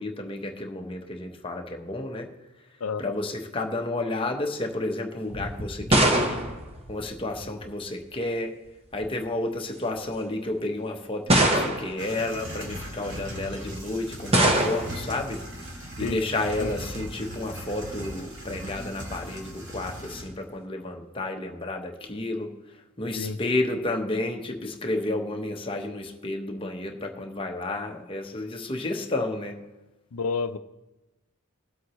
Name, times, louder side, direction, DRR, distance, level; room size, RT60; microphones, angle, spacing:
voice 1, 0.0-2.3 3.0-6.5 6.9-8.6 8.9-15.4 16.0-22.5 23.0-29.6, left 2 dB, 25° left, 3 dB, 1.0 m, -31 dB
voice 2, 2.8-3.1 16.0-16.2 16.6-16.7 23.2-23.4 30.1-30.6, left 4 dB, 80° left, 12 dB, 0.6 m, -30 dB
sound 1, 5.3-7.6 8.7-9.1 10.0-10.1 11.3-12.1 14.3-15.1, right 1 dB, 25° right, 1.2 m, -23 dB
sound 2, 12.0-20.2, equal, 55° right, 2.4 m, -38 dB
20.5 x 7.9 x 3.1 m, 1.1 s
head